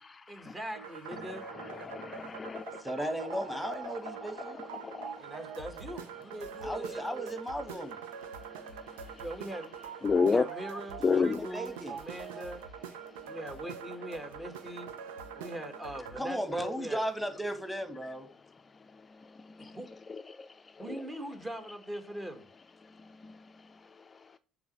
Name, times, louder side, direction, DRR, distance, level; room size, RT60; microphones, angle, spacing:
voice 1, 0.3-1.4 5.1-7.3 9.2-9.7 10.2-12.6 13.3-14.9 15.4-17.0 19.8-19.9 20.8-22.5, right 1 dB, 20° right, 1.9 m, -41 dB
sound 1, 0.7-16.2, right 7 dB, 75° right, 0.8 m, -44 dB
voice 2, 1.2-2.8 4.8-5.2 8.9-9.2 10.0-10.5 11.0-11.4 20.1-20.5 20.8-21.0 23.2-23.4, left 5 dB, 25° left, 0.5 m, -31 dB
voice 3, 2.8-4.6 6.6-8.0 11.1-12.0 16.2-18.3, equal, ahead, 1.9 m, -36 dB
7.0 x 5.3 x 6.7 m
hypercardioid pair, 60°, 0 cm